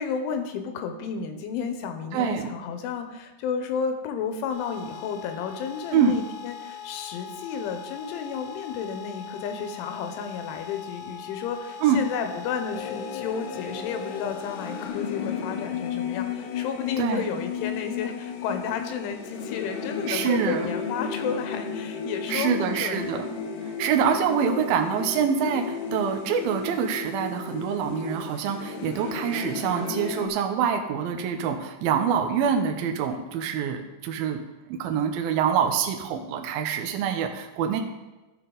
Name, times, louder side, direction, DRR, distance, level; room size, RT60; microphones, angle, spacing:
voice 1, 0.0-23.3 24.4-24.7, left 6 dB, 90° left, 6 dB, 3.3 m, -32 dB
voice 2, 2.1-2.5 5.9-6.2 11.8-12.0 17.0-17.3 20.1-20.7 22.3-23.3 23.8-34.4 34.7-37.8, right 7 dB, 85° right, 4 dB, 2.1 m, -25 dB
sound 1, 4.5-14.9, left 8 dB, 50° left, 1.5 m, -41 dB
sound 2, 12.7-30.3, left 6 dB, 75° left, 2.8 m, -34 dB
14.0 x 6.4 x 3.9 m, 1.1 s
omnidirectional pair, 5.4 m